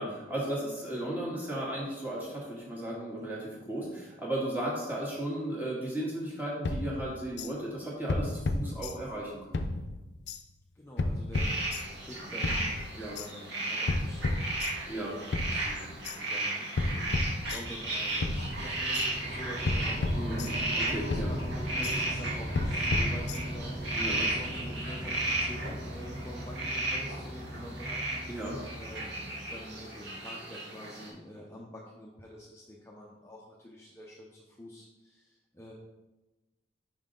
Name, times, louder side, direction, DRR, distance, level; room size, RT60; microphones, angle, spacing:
voice 1, 0.0-9.7 13.0-13.2 14.9-15.1 20.1-20.4 20.9-21.3 24.0-24.3 28.3-28.6, right 1 dB, 10° right, -5 dB, 1.5 m, -35 dB
sound 1, 6.6-7.5 8.1-9.2 9.5-10.4 11.0-12.1 12.4-13.3 13.9-15.0 15.3-16.2 16.8-17.9 18.2-19.1 19.7-20.8 21.1-22.0 22.5-23.7, left 2 dB, 70° left, 0.5 m, -33 dB
voice 2, 10.7-11.6 11.9-17.1 17.5-20.6 21.1-28.1 28.8-29.1 29.5-35.7, equal, 15° left, -4 dB, 0.6 m, -47 dB
sound 2, 11.3-31.1, right 2 dB, 85° right, 1.6 m, -35 dB
sound 3, 17.4-30.0, equal, 40° right, 1.3 m, -39 dB
5.5 x 5.2 x 3.8 m, 1.1 s
head